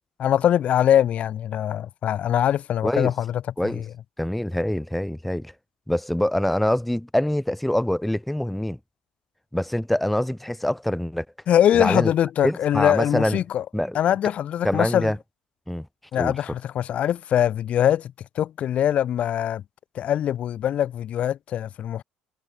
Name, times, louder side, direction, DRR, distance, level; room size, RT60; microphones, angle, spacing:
voice 1, 0.2-3.4 3.7-3.8 11.5-13.6 13.9-15.1 16.1-19.6 19.9-22.0, left 10 dB, 45° left, 1.0 m, -22 dB
voice 2, 4.2-5.5 5.9-8.8 9.5-11.2 11.8-12.1 12.4-13.4 13.7-14.0 14.6-15.2 15.7-15.9 16.2-16.3, left 1 dB, 5° left, 1.0 m, -24 dB
cardioid pair, 145°, 3 cm